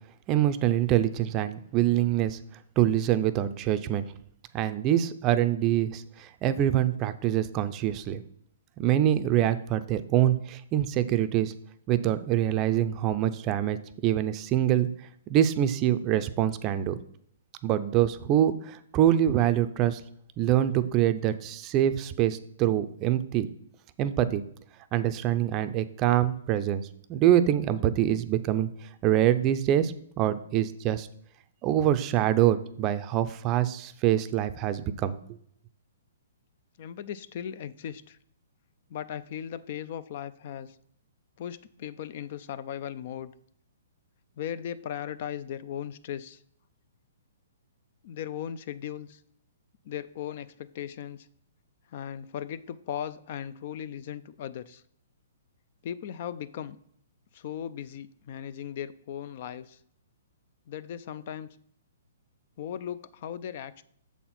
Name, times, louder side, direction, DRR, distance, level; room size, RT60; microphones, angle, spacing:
voice 1, 0.3-2.4 2.8-4.0 4.5-8.2 8.8-11.5 11.9-14.9 15.3-17.0 17.6-20.0 20.4-23.5 24.0-24.4 24.9-28.7 29.0-31.1 31.6-35.2, right 11 dB, 30° right, 11 dB, 0.5 m, -25 dB
voice 2, 36.8-38.2 38.9-40.8 41.4-43.3 44.4-46.4 48.0-49.2 49.8-51.3 51.9-54.8 55.8-56.8 57.3-59.8 60.7-61.5 62.6-63.8, left 9 dB, 50° left, 16 dB, 0.4 m, -37 dB
6.9 x 4.3 x 5.8 m, 0.67 s
hypercardioid pair, 145°, 0 cm